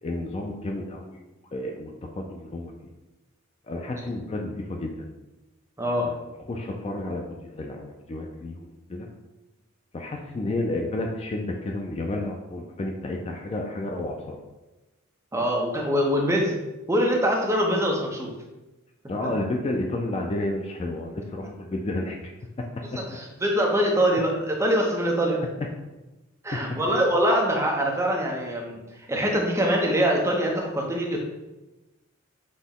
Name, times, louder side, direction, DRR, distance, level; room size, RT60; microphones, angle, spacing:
voice 1, 0.0-1.2 1.5-2.7 3.7-5.1 5.9-9.1 9.9-14.4 19.1-22.3 22.6-22.7 22.9-23.0 26.5-26.6, left 2 dB, 25° left, 1 dB, 0.3 m, -31 dB
voice 2, 5.8-6.1 15.3-16.6 16.9-18.3 23.1-25.4 26.4-28.8 29.1-31.2, equal, 15° right, -1 dB, 0.6 m, -23 dB
6.1 x 2.2 x 3.6 m, 1.1 s
head